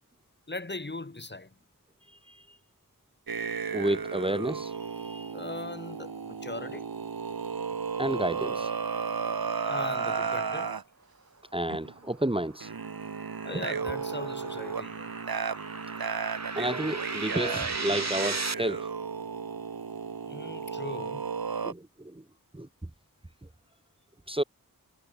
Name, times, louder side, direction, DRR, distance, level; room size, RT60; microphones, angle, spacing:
voice 1, 0.5-1.5 5.3-6.9 9.6-10.8 13.4-15.1 20.3-21.2, left 2 dB, 30° left, 1.3 m, -39 dB
sound 1, 3.3-10.8 11.7-11.9 12.6-21.7, right 5 dB, 85° right, 1.3 m, -34 dB
voice 2, 3.7-5.3 8.0-8.7 11.5-12.7 13.5-13.6 16.5-18.9 21.6-22.2 22.5-22.7 24.3-24.4, right 1 dB, 15° right, 1.0 m, -31 dB
sound 2, 11.8-18.5, right 3 dB, 50° right, 2.1 m, -37 dB
wide cardioid pair, 60°, 35 cm